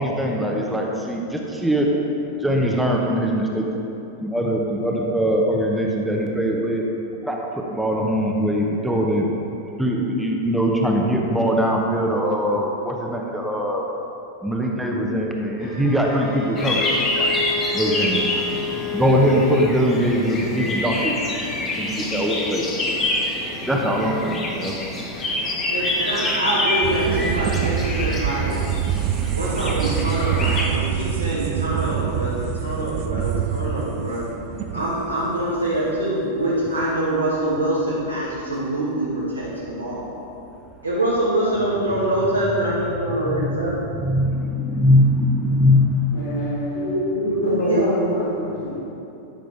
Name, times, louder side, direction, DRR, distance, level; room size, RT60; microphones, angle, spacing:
voice 1, 0.0-1.9 2.4-3.7 4.2-6.9 7.2-9.3 9.8-13.8 14.4-17.3 17.7-21.2 21.6-22.9 23.4-24.7 43.2-43.6 43.9-46.0, equal, 5° right, -1 dB, 0.9 m, -22 dB
Bowed string instrument, 15.6-19.7, left 3 dB, 45° left, 1.5 m, -29 dB
sound 1, 16.6-30.6, left 2 dB, 25° left, 1.4 m, -27 dB
voice 2, 25.7-28.6 29.3-34.3 34.7-40.1 40.8-43.9 46.7-48.4, right 1 dB, 85° right, -9 dB, 1.6 m, -24 dB
sound 2, 26.8-37.3 37.7-37.8 38.0-38.8 39.4-40.0 40.3-40.4 40.9-41.0 41.6-41.7 42.5-42.7 43.3-43.4 43.5-43.6 44.0-44.5 44.8-44.9 45.3-45.4 45.7-45.8, right 9 dB, 40° right, 0.4 m, -26 dB
voice 3, 46.1-47.0 47.4-48.8, equal, 70° left, -7 dB, 1.6 m, -25 dB
11.5 x 6.5 x 3.4 m, 2.9 s
figure-of-eight pair, 90°, 0 cm